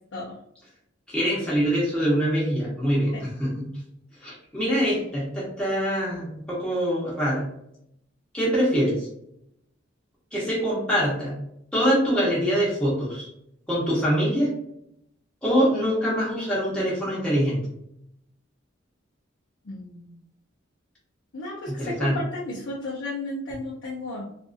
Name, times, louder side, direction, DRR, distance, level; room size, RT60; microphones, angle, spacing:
voice 1, 1.1-3.7 4.2-7.4 8.3-9.1 10.3-11.4 11.7-13.3 13.7-14.5 15.4-17.6 21.7-22.2, equal, 5° left, -7 dB, 0.8 m, -24 dB
voice 2, 19.6-20.2 21.3-24.2, left 1 dB, 80° left, -6 dB, 0.6 m, -34 dB
2.6 x 2.5 x 2.4 m, 0.77 s
head